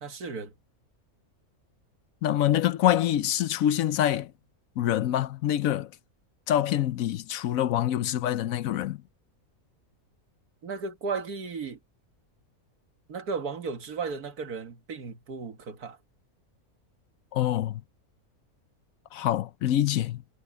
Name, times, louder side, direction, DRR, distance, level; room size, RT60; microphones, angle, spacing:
voice 1, 0.0-0.5 10.6-11.8 13.1-16.0, right 5 dB, 90° right, 2.1 m, -35 dB
voice 2, 2.2-4.3 4.8-5.9 6.5-9.0 17.3-17.8 19.1-20.2, left 12 dB, 70° left, 1.0 m, -25 dB
omnidirectional pair, 1.6 m